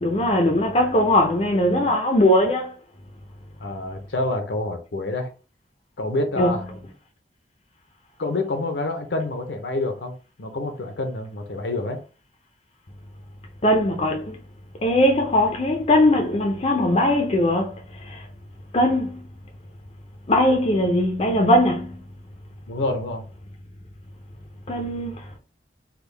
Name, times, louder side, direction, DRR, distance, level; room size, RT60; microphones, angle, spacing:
voice 1, 0.0-2.7 6.4-6.5 13.6-14.4 14.8-18.2 18.7-19.2 20.3-22.0 24.7-25.1, left 1 dB, 35° left, 0.5 m, -20 dB
voice 2, 3.6-5.3 6.0-6.7 8.2-12.0 22.7-23.2, left 2 dB, 70° left, 0.7 m, -27 dB
3.6 x 2.2 x 3.3 m
head